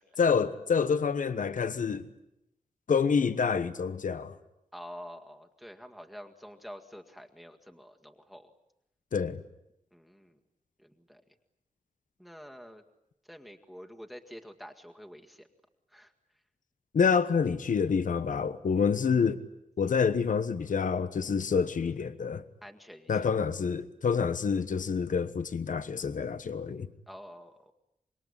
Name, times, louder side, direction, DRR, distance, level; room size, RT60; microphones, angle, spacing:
voice 1, 0.2-2.1 2.9-4.3 9.1-9.4 16.9-19.4 19.8-22.4 23.1-26.9, left 6 dB, 75° left, 1.2 m, -27 dB
voice 2, 4.7-8.5 9.9-10.4 10.8-11.2 12.2-12.8 13.2-15.5 15.9-16.1 22.6-23.1 27.1-27.7, equal, ahead, 1.9 m, -47 dB
26.0 x 21.5 x 9.8 m
wide cardioid pair, 90°, 13 cm